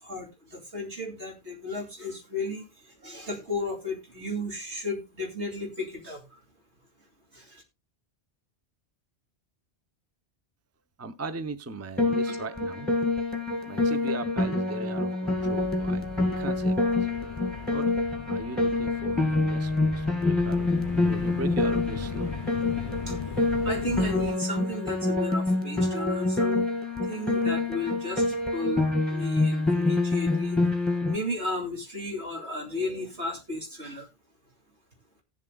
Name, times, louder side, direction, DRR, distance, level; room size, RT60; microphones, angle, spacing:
voice 1, 0.0-6.4 7.3-7.6 12.3-12.4 23.1-23.2 23.6-26.6 27.0-30.6 31.1-34.1, left 2 dB, 75° right, 3.0 m, -34 dB
voice 2, 11.0-12.9 13.7-16.1 16.4-17.1 17.7-17.9 18.3-20.7 20.9-22.3, right 3 dB, 15° right, 0.6 m, -38 dB
Piano, 12.0-31.2, left 2 dB, ahead, 2.1 m, -26 dB
sound 1, 15.3-24.3, left 5 dB, 40° left, 0.5 m, -39 dB
18.0 x 7.4 x 2.3 m
omnidirectional pair, 1.1 m